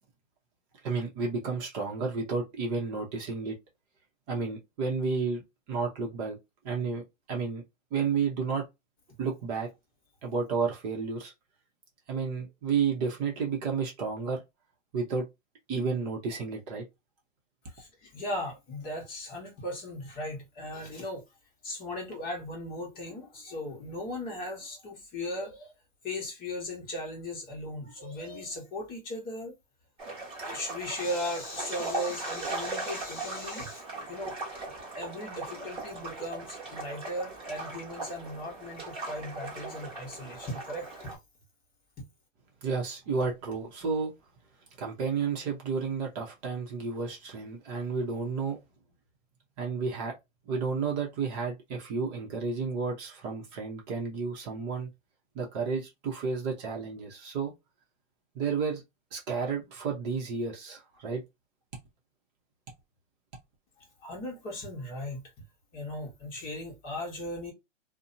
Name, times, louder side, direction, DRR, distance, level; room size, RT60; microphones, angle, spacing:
voice 1, 0.8-3.6 4.3-5.4 5.7-6.4 6.6-7.0 7.3-7.6 7.9-8.7 9.2-9.7 10.2-11.3 12.1-14.4 14.9-15.2 15.7-16.8 42.6-44.1 44.8-48.6 49.6-50.2 50.5-54.9 55.3-57.5 58.3-58.8 59.1-61.2, right 5 dB, 30° right, 0.7 m, -31 dB
voice 2, 17.7-21.2 21.6-25.7 26.0-29.5 30.1-34.3 34.9-41.2 42.0-42.1 63.8-65.2 65.7-67.5, left 1 dB, 25° left, 0.9 m, -37 dB
sound 1, 30.0-41.1, right 2 dB, 15° right, 1.1 m, -39 dB
2.6 x 2.1 x 2.5 m
hypercardioid pair, 135°, 39 cm